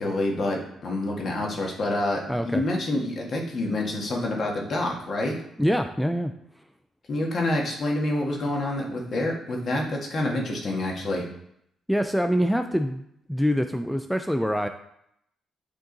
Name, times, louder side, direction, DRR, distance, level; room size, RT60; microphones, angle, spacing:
voice 1, 0.0-5.4 7.1-11.3, left 1 dB, 50° left, 0 dB, 1.7 m, -27 dB
voice 2, 2.3-2.6 5.6-6.3 11.9-13.0 13.3-14.7, equal, ahead, 7 dB, 0.4 m, -24 dB
8.7 x 3.7 x 3.9 m, 0.75 s
cardioid pair, 90°, 0 cm